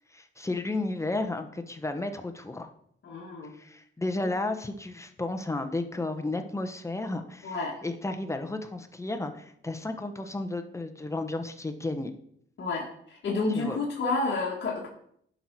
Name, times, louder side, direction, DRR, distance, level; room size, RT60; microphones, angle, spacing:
voice 1, 0.1-2.7 3.6-7.6 7.8-12.1 13.5-13.8, left 2 dB, 15° left, 6 dB, 1.0 m, -33 dB
voice 2, 3.0-3.5 7.4-7.8 12.6-14.9, left 3 dB, 60° left, -4 dB, 1.8 m, -30 dB
11.0 x 5.6 x 4.7 m, 0.69 s
cardioid pair, 100°, 21 cm